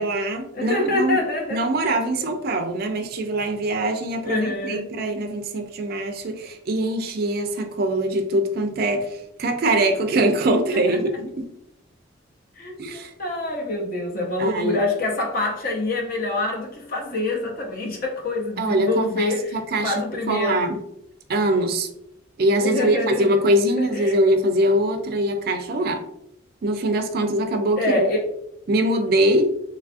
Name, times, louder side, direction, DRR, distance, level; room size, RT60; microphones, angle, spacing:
voice 1, 0.0-1.2 1.5-11.5 12.8-13.1 14.4-14.8 18.6-20.0 20.3-20.8 21.3-21.9 22.4-26.0 26.6-28.1 28.7-29.5, right 1 dB, 50° right, 5 dB, 0.4 m, -23 dB
voice 2, 0.5-1.6 4.2-4.8 10.9-11.0 12.6-19.6 19.8-20.6 22.6-23.3 23.8-24.2 27.8-28.2, left 2 dB, 45° left, 0 dB, 0.6 m, -25 dB
3.2 x 2.3 x 2.4 m, 0.76 s
head